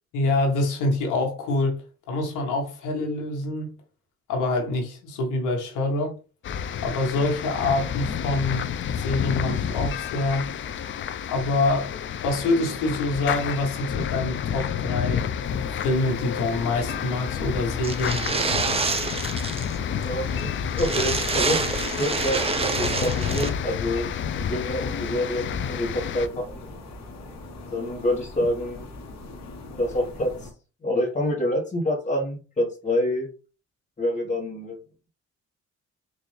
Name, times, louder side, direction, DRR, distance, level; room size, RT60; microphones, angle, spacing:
voice 1, 0.1-1.8 2.1-3.7 4.3-6.1 6.8-8.6 9.0-10.5 11.3-11.9 12.2-15.2 15.7-18.2, left 2 dB, 90° left, 1.2 m, -25 dB
sound 1, 6.4-26.3, left 8 dB, 40° left, 0.4 m, -30 dB
sound 2, 15.4-30.5, left 2 dB, 60° left, 1.2 m, -40 dB
sound 3, 17.8-19.8 20.0-20.1 20.4-20.5 20.7-23.5, right 4 dB, 20° right, 0.5 m, -27 dB
voice 2, 20.0-24.1 24.5-26.6 27.7-28.8 29.8-30.5 30.8-33.3 34.0-34.8, left 1 dB, 25° left, 1.2 m, -27 dB
3.9 x 2.6 x 3.2 m
cardioid pair, 90°, 30 cm